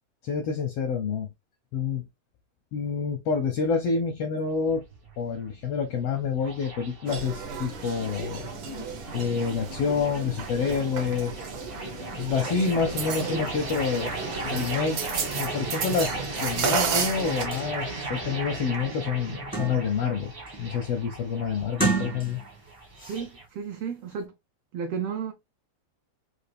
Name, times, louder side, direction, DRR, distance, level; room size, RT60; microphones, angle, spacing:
voice 1, 0.2-1.3 1.7-2.0 2.7-4.8 5.2-8.5 9.1-11.5 12.2-14.1 14.4-15.0 15.4-16.1 16.4-20.3 20.6-22.4, left 5 dB, 80° left, 1.4 m, -28 dB
sound 1, 4.5-23.4, right 2 dB, 45° right, 0.7 m, -37 dB
sound 2, 7.1-17.5, right 5 dB, 70° right, 1.2 m, -33 dB
voice 2, 13.2-13.5 23.1-24.3 24.7-25.3, right 6 dB, 85° right, 1.4 m, -33 dB
sound 3, 17.5-17.7 18.2-18.3 18.7-20.1 20.5-20.8 21.6-22.6 23.0-23.2, right 3 dB, 15° left, 0.3 m, -31 dB
5.0 x 2.4 x 3.3 m
omnidirectional pair, 3.4 m